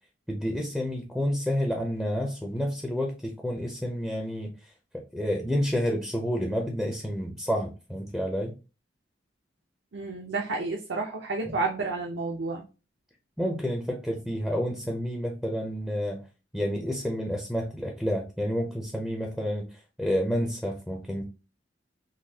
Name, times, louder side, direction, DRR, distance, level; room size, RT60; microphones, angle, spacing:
voice 1, 0.3-4.5 5.1-8.6 11.5-11.6 13.4-16.2 16.5-21.2, equal, 5° left, 1 dB, 0.5 m, -29 dB
voice 2, 9.9-12.6, right 3 dB, 75° right, 1 dB, 0.6 m, -30 dB
3.9 x 2.7 x 2.7 m, 0.31 s
head